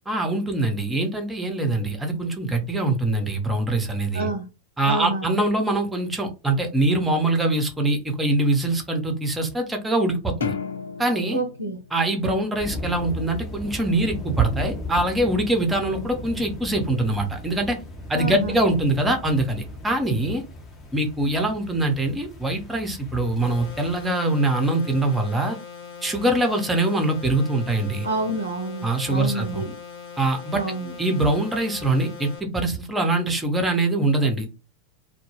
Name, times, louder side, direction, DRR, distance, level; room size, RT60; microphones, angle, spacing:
voice 1, 0.1-4.3 4.8-10.5 11.0-11.4 11.9-17.8 18.1-20.4 20.9-25.6 26.0-28.1 28.8-29.6 30.2-30.6 31.0-34.5, right 2 dB, 10° right, 4 dB, 0.6 m, -23 dB
voice 2, 4.1-4.5 4.8-5.3 11.3-11.8 18.1-18.6 28.0-29.8 30.5-30.9, right 2 dB, 75° right, 4 dB, 0.4 m, -28 dB
sound 1, 10.4-13.0, left 6 dB, 70° left, 0.3 m, -34 dB
sound 2, 12.6-24.1, left 1 dB, 25° left, 0.7 m, -37 dB
sound 3, 23.4-32.4, left 6 dB, 50° left, 0.9 m, -41 dB
2.1 x 2.1 x 3.0 m, 0.30 s
figure-of-eight pair, 90°, 0 cm